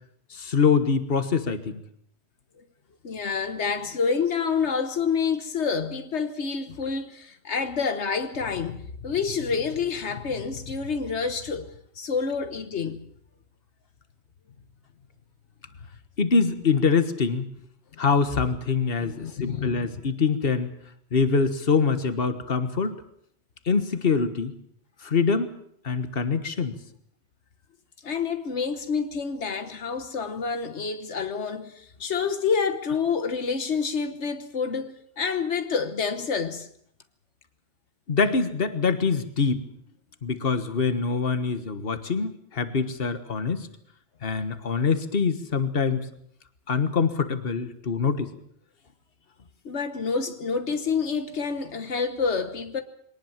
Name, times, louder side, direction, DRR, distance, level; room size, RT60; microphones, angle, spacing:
voice 1, 0.3-1.8 16.2-17.5 18.0-20.7 21.1-23.0 23.7-24.5 25.0-25.5 25.8-26.7 38.1-39.7 40.2-43.7 44.2-46.1 46.7-48.3, left 5 dB, 60° left, 1.7 m, -24 dB
voice 2, 3.0-13.0 19.0-19.9 28.0-36.7 49.6-52.8, left 5 dB, 85° left, 1.5 m, -28 dB
23.0 x 19.0 x 7.4 m
omnidirectional pair, 1.1 m